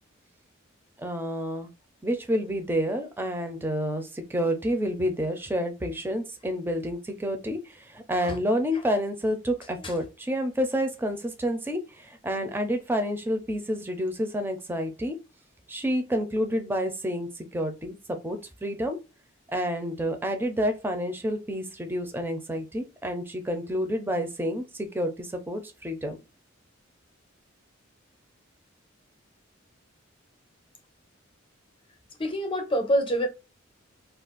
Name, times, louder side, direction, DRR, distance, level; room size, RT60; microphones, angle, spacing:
voice 1, 1.0-1.7 2.0-15.2 15.7-19.0 19.5-26.2, equal, 10° right, 0.5 m, -29 dB
voice 2, 32.2-33.3, equal, 25° left, 0.7 m, -25 dB
2.5 x 2.4 x 3.7 m
head